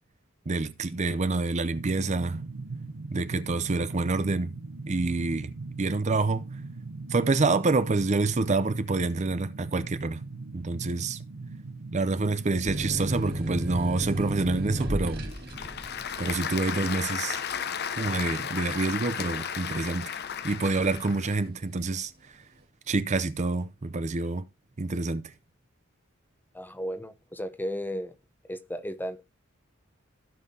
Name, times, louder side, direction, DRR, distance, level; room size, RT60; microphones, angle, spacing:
voice 1, 0.5-2.4 3.1-4.5 4.9-5.5 5.8-6.4 7.1-10.2 10.5-11.2 11.9-15.3 16.2-17.4 18.0-20.2 20.4-22.4 22.9-24.4 24.8-25.3, right 3 dB, 35° right, 0.6 m, -27 dB
sound 1, 1.7-15.1, right 3 dB, 85° right, 0.8 m, -40 dB
sound 2, 12.7-19.9 20.4-21.1, right 1 dB, 50° right, 2.4 m, -34 dB
Applause / Crowd, 14.9-21.4, left 8 dB, 55° left, 0.8 m, -34 dB
voice 2, 26.5-28.1 28.5-29.2, equal, 10° left, 0.8 m, -34 dB
16.5 x 5.6 x 2.8 m
head